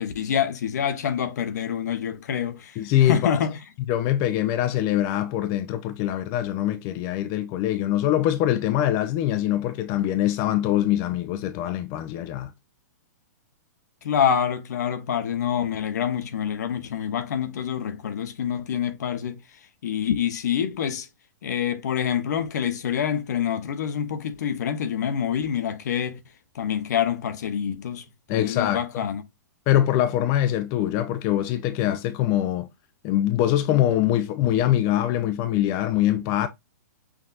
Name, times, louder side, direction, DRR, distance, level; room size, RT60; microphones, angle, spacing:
voice 1, 0.0-2.8 3.0-3.6 14.0-19.4 19.8-21.1 21.4-26.2 26.5-28.0 28.3-29.2, left 8 dB, 70° left, 0.8 m, -26 dB
voice 2, 2.8-3.4 3.9-12.5 28.3-29.0 29.7-32.7 33.0-36.5, left 12 dB, 35° left, 0.4 m, -23 dB
5.9 x 2.7 x 2.4 m
hypercardioid pair, 130°, 10 cm